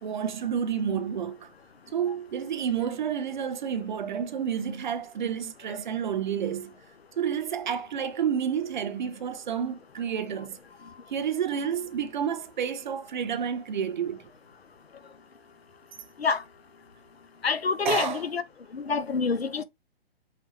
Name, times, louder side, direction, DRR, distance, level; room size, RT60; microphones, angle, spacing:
voice 1, 0.0-1.5 1.9-6.7 7.2-10.6 11.1-14.3 17.8-18.3, right 8 dB, 50° right, 0.8 m, -30 dB
voice 2, 17.4-18.4 18.7-19.6, left 5 dB, 75° left, 0.7 m, -27 dB
5.7 x 2.4 x 3.1 m
figure-of-eight pair, 125°, 31 cm